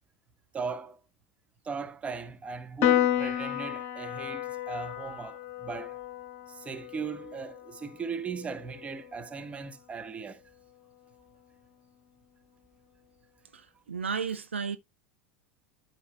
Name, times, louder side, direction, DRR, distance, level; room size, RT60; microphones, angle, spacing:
voice 1, 0.5-1.0 1.6-6.0 6.5-10.4, right 5 dB, 20° right, 1.1 m, -38 dB
Piano, 2.8-9.5, left 11 dB, 45° left, 1.0 m, -32 dB
voice 2, 13.9-14.8, right 6 dB, 75° right, 0.6 m, -32 dB
12.5 x 4.7 x 2.2 m
figure-of-eight pair, 80°, 6 cm